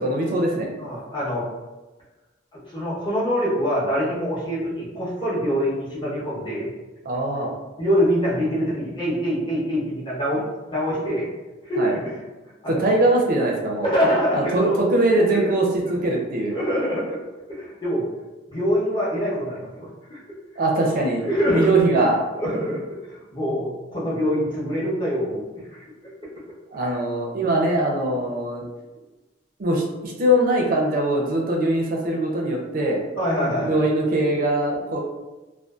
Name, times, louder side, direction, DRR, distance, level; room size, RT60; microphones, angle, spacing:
voice 1, 0.0-0.7 7.0-7.5 11.8-11.9 12.7-13.9 14.3-16.6 20.6-22.2 26.7-28.6 29.6-33.0 33.5-35.0, right 1 dB, 50° right, 0 dB, 0.5 m, -22 dB
voice 2, 0.8-1.5 2.5-6.7 7.8-11.3 11.6-12.1 12.6-12.8 13.8-14.7 15.4-15.5 16.5-17.2 17.5-18.0 18.5-20.2 21.3-21.7 22.4-22.8 23.1-25.8 26.8-26.9 33.2-33.8, equal, 25° left, -7 dB, 0.8 m, -24 dB
2.5 x 2.2 x 2.3 m, 1.1 s
head